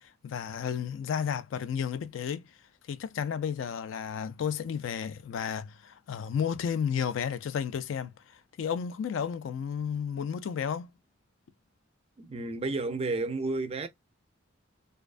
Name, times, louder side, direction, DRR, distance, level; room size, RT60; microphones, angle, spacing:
voice 1, 0.2-2.4 2.9-8.1 8.6-10.9, left 7 dB, 70° left, 0.3 m, -32 dB
voice 2, 12.2-13.9, right 3 dB, 30° right, 0.3 m, -31 dB
2.3 x 2.2 x 2.4 m
head